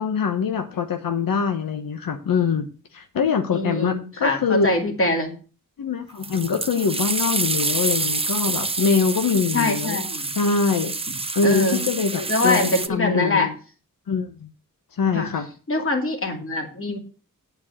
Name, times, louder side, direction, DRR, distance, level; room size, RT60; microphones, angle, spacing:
voice 1, 0.0-2.7 2.9-4.7 5.8-10.1 10.3-10.9 11.4-13.5 14.1-14.5 15.0-15.5, left 5 dB, 90° left, 6 dB, 1.0 m, -23 dB
voice 2, 3.5-5.3 9.5-10.3 11.4-11.8 12.1-13.5 15.1-15.3 15.7-17.0, left 2 dB, 40° left, 2 dB, 2.6 m, -23 dB
sound 1, 6.2-12.9, right 3 dB, 15° right, 0.5 m, -27 dB
9.1 x 4.6 x 7.2 m, 0.36 s
wide cardioid pair, 115°, 33 cm